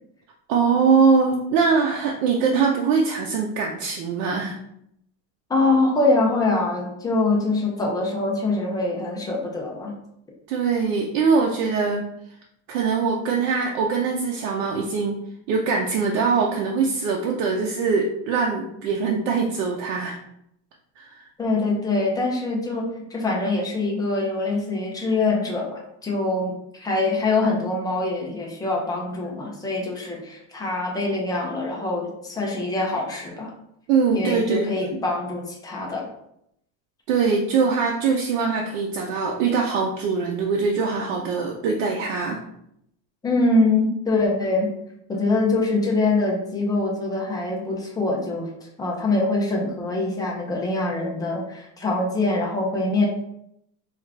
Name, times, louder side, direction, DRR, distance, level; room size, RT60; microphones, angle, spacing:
voice 1, 0.5-4.6 10.5-12.0 12.7-15.2 15.5-20.2 21.0-21.2 33.9-35.0 37.1-42.4, right 5 dB, 90° right, 0 dB, 0.7 m, -22 dB
voice 2, 5.5-9.9 21.4-33.5 34.1-36.1 43.2-44.7 45.1-48.5 48.8-53.1, left 2 dB, 10° left, -2 dB, 0.3 m, -24 dB
4.6 x 2.4 x 3.2 m, 0.76 s
cardioid pair, 160°, 44 cm